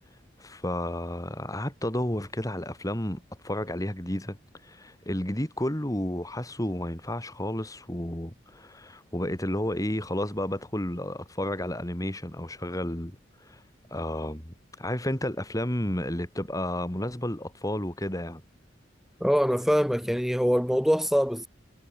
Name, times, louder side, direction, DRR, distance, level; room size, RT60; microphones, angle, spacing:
voice 1, 0.4-4.4 4.6-13.6 13.9-18.4, left 1 dB, 20° left, 3.1 m, -32 dB
voice 2, 19.2-21.5, equal, ahead, 2.2 m, -24 dB
head